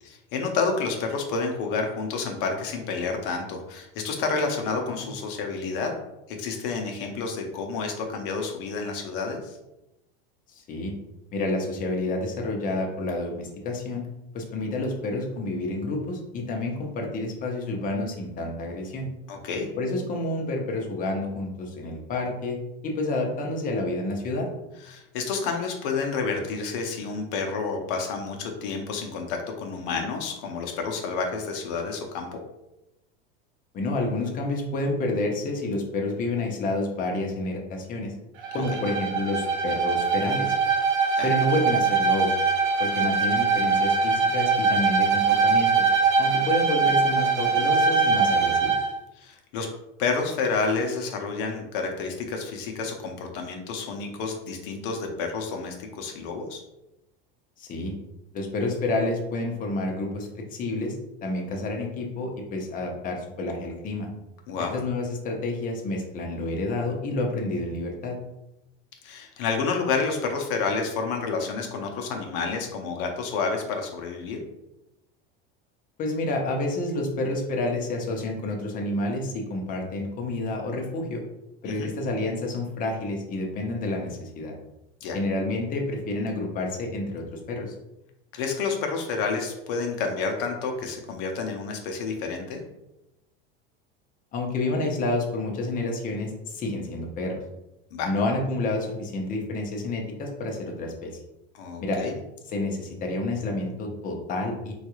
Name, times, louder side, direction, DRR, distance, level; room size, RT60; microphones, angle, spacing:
voice 1, 0.0-5.9 6.3-9.6 19.3-19.7 24.8-32.4 38.5-38.8 41.1-41.3 49.2-49.7 50.0-56.6 64.5-64.8 69.0-74.4 81.6-81.9 85.0-85.2 88.3-92.6 97.9-98.1 101.5-102.2, left 4 dB, 65° left, 3 dB, 0.7 m, -29 dB
voice 2, 10.5-10.9 11.3-14.1 14.3-19.1 19.8-22.6 22.8-24.5 33.7-38.1 38.5-40.6 41.2-42.3 42.8-45.9 46.2-48.7 57.6-57.9 58.3-61.0 61.2-64.1 64.7-68.2 76.0-81.2 81.6-84.5 85.1-87.7 94.3-97.4 98.0-101.2 101.8-102.0 102.5-104.7, left 2 dB, 30° left, 1 dB, 0.7 m, -29 dB
Bowed string instrument, 38.4-48.9, right 4 dB, 70° right, 0.7 m, -22 dB
3.7 x 2.4 x 3.0 m, 0.91 s
supercardioid pair, 135°, 29 cm